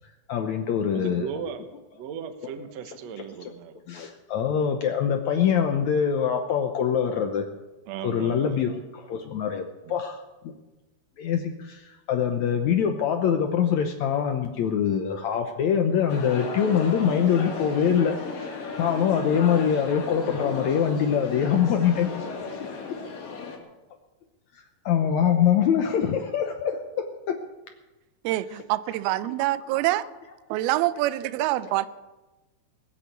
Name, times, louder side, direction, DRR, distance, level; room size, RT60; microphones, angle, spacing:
voice 1, 0.3-1.3 2.8-3.0 3.9-7.5 8.0-10.5 11.2-22.4 24.8-27.4 28.5-28.6 28.9-29.0 29.2-29.3 30.3-30.4 31.6-31.7, left 8 dB, 85° left, 5 dB, 1.6 m, -24 dB
voice 2, 0.9-1.6 1.9-3.8 7.9-8.7 9.8-10.0, right 8 dB, 60° right, 7 dB, 1.8 m, -37 dB
sound 1, 16.1-23.6, left 4 dB, 60° left, 4.1 m, -35 dB
voice 3, 28.2-30.0 30.5-31.9, right 16 dB, 80° right, 15 dB, 2.5 m, -25 dB
20.5 x 8.5 x 8.2 m, 1.1 s
omnidirectional pair, 4.6 m